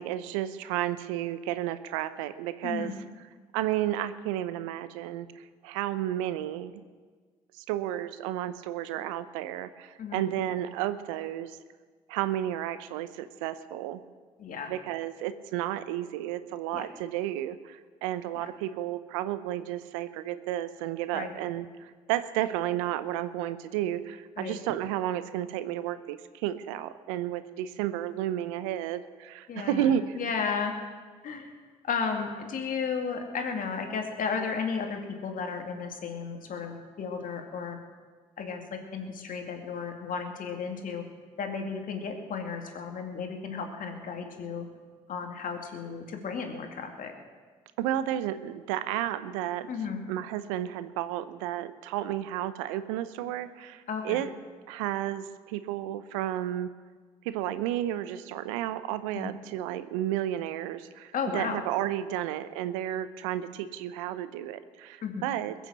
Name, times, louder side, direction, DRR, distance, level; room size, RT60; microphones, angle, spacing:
voice 1, 0.0-2.9 3.5-6.7 7.5-11.6 12.1-14.0 14.7-30.2 47.8-49.7 50.1-54.3 54.7-56.7 57.2-65.5, right 12 dB, 80° right, 13 dB, 0.7 m, -32 dB
voice 2, 14.4-14.7 16.7-16.8 18.4-18.5 21.1-21.3 24.4-24.6 29.5-30.7 31.2-31.5 31.8-37.8 38.4-41.1 41.4-44.7 45.1-47.1 49.7-50.0 53.9-54.2 59.1-59.3 61.1-61.6 65.0-65.3, left 5 dB, 55° left, 4 dB, 2.4 m, -34 dB
21.0 x 7.2 x 7.4 m, 1.5 s
hypercardioid pair, 50°, 17 cm